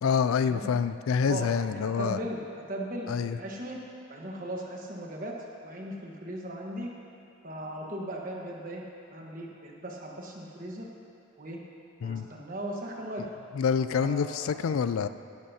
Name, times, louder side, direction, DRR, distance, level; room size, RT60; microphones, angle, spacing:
voice 1, 0.0-2.2 3.1-3.4 12.0-12.3 13.5-15.1, left 6 dB, 70° left, 12 dB, 0.3 m, -27 dB
voice 2, 1.2-2.4 2.7-3.1 3.4-3.8 4.1-5.3 5.6-6.9 7.4-8.8 9.1-10.9 11.4-11.6 12.0-13.2 14.0-14.6, right 1 dB, 40° right, -1 dB, 1.3 m, -37 dB
15.5 x 11.5 x 2.8 m, 2.8 s
head